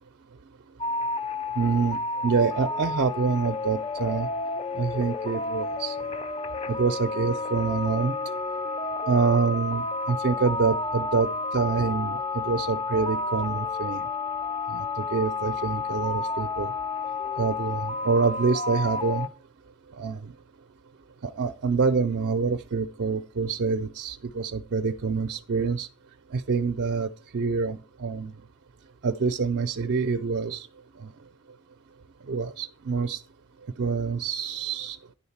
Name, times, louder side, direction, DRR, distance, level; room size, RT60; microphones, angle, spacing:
sound 1, 0.8-19.3, left 3 dB, 25° left, 0.4 m, -31 dB
voice 1, 1.6-4.3 4.7-6.0 6.7-8.1 9.1-11.3 11.5-14.0 14.7-16.7 17.4-19.3 20.0-20.3 21.2-25.9 26.3-28.3 29.0-30.7 31.0-31.1 32.3-33.2 33.8-35.0, right 5 dB, 50° right, 8 dB, 0.4 m, -26 dB
10.0 x 3.9 x 7.1 m, 0.38 s
head